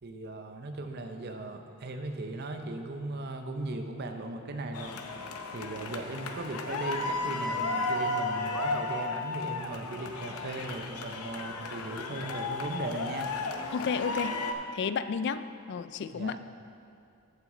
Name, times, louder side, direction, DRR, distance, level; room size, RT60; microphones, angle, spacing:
voice 1, 0.0-13.3 16.1-16.4, right 2 dB, 50° right, 6 dB, 0.7 m, -38 dB
sound 1, 4.7-14.5, left 3 dB, 90° left, 0.7 m, -34 dB
voice 2, 13.7-14.4 14.7-16.4, left 6 dB, 50° left, 13 dB, 0.3 m, -32 dB
14.0 x 6.2 x 3.8 m, 2.5 s
head